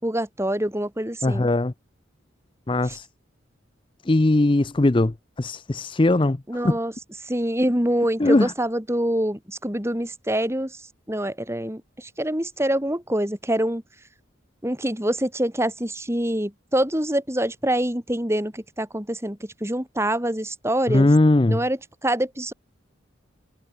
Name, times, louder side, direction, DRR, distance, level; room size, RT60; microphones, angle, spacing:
voice 1, 0.0-1.5 2.8-3.0 6.5-6.9 7.2-10.8 11.1-13.8 14.6-21.1 21.5-22.5, right 1 dB, 15° right, 3.6 m, -25 dB
voice 2, 1.2-1.7 2.7-3.1 4.1-6.4 6.6-6.7 8.2-8.5 20.9-21.6, left 2 dB, 25° left, 0.6 m, -19 dB
head